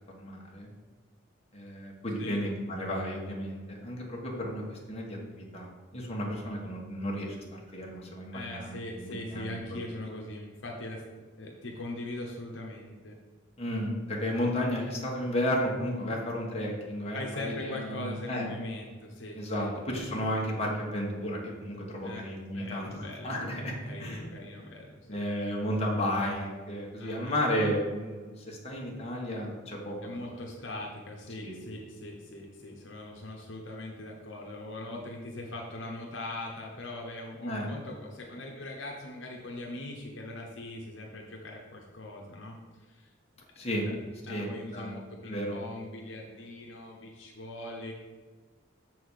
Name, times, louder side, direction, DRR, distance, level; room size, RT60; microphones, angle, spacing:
voice 1, 0.1-0.7 1.5-5.7 5.9-9.6 13.6-18.5 19.3-24.3 25.1-30.2 31.4-31.6 37.4-37.7 43.6-43.9 44.3-45.0 45.3-45.6, equal, 30° left, -2 dB, 1.7 m, -33 dB
voice 2, 8.3-11.0 11.4-13.2 17.1-19.7 22.0-22.3 22.5-23.3 23.6-25.2 27.0-27.7 30.0-43.9 44.2-47.9, left 2 dB, 70° left, -1 dB, 1.1 m, -41 dB
7.0 x 4.6 x 6.5 m, 1.4 s
head